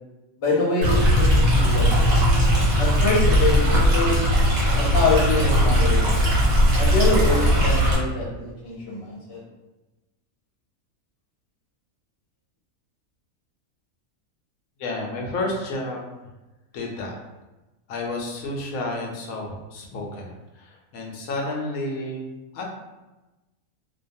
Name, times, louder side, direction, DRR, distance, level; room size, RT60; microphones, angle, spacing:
voice 1, 0.4-2.1 2.8-4.2 4.8-6.0 6.8-9.4, left 3 dB, 50° left, -5 dB, 1.0 m, -25 dB
Stream, 0.8-7.9, equal, 65° right, 1.1 m, -19 dB
voice 2, 14.8-16.1 16.7-17.2 17.9-20.3 20.6-22.3 22.5-22.6, left 2 dB, 80° left, -1 dB, 1.0 m, -30 dB
2.6 x 2.2 x 2.6 m, 1.1 s
omnidirectional pair, 1.5 m